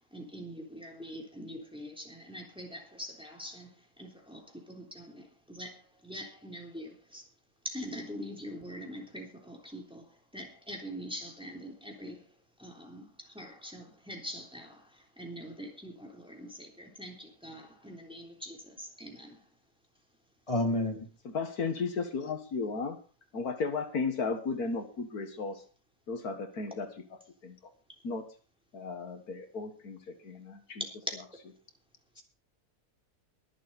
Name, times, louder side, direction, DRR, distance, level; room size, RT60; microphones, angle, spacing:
voice 1, 0.1-3.7 4.0-7.2 7.6-10.1 10.3-12.2 12.6-13.0 13.3-14.9 15.2-19.4, equal, 5° right, 1 dB, 3.5 m, -44 dB
voice 2, 20.5-21.1, left 1 dB, 20° left, 2 dB, 3.1 m, -29 dB
voice 3, 21.3-23.0 23.3-25.6 26.1-26.9 27.4-27.6 28.0-28.2 28.7-30.0 30.2-30.8, left 4 dB, 80° left, 7 dB, 2.1 m, -34 dB
22.5 x 7.5 x 4.2 m, 0.35 s
omnidirectional pair, 1.6 m